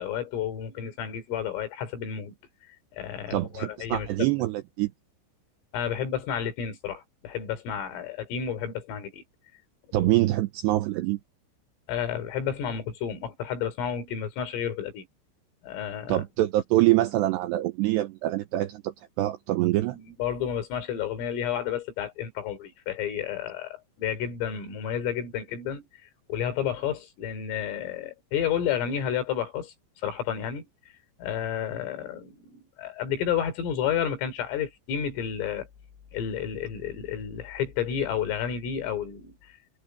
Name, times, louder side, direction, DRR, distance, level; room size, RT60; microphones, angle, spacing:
voice 1, 0.0-2.4 2.9-4.1 5.7-9.2 10.0-10.1 11.9-15.1 15.6-16.2 19.9-25.8 26.3-29.7 30.0-30.6 31.2-35.7 36.1-39.4, left 8 dB, 80° left, 6.2 m, -31 dB
voice 2, 3.3-4.9 9.9-11.2 16.1-20.0, right 16 dB, 85° right, 2.5 m, -25 dB
omnidirectional pair, 5.8 m